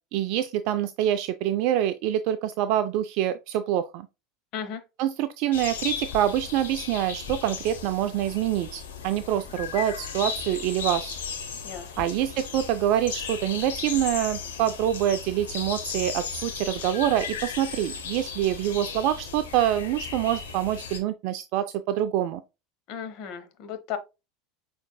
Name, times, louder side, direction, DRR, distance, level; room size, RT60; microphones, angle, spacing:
voice 1, 0.1-4.1 5.0-11.2 12.0-22.4, right 12 dB, 55° right, 0.3 m, -26 dB
sound 1, 5.5-21.0, left 6 dB, 70° left, 1.2 m, -36 dB
voice 2, 22.9-24.0, left 8 dB, 50° left, 1.0 m, -35 dB
6.3 x 3.5 x 2.2 m
figure-of-eight pair, 75°, 0 cm